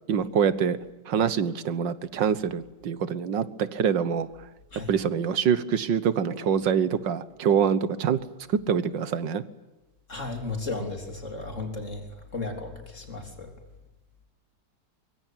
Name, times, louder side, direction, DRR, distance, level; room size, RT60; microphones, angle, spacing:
voice 1, 0.1-0.8 1.1-4.3 4.9-8.2 8.5-9.4, right 7 dB, 90° right, 15 dB, 1.9 m, -25 dB
voice 2, 10.1-12.1 12.3-13.5, left 3 dB, 40° left, 4 dB, 3.8 m, -34 dB
24.0 x 23.0 x 9.1 m, 1.0 s
omnidirectional pair, 1.9 m